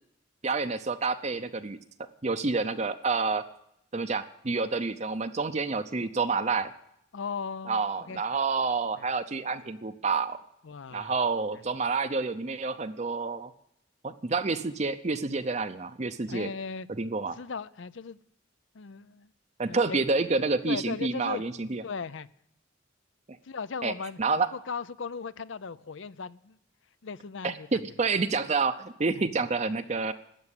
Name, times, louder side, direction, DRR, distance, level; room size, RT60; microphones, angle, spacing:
voice 1, 0.4-1.8 2.2-3.4 3.9-6.7 7.7-10.4 10.9-13.5 14.0-16.5 17.0-17.4 19.6-21.8 23.8-23.9 24.2-24.5 27.4-30.1, right 4 dB, 35° right, 0.6 m, -28 dB
voice 2, 7.1-8.2 10.6-11.1 16.3-16.9 17.3-18.2 18.7-19.3 19.7-20.0 20.6-21.4 21.8-22.3 23.4-24.2 24.5-26.6 27.0-27.8 29.1-29.2, left 5 dB, 65° left, 0.6 m, -37 dB
13.0 x 8.7 x 9.8 m
head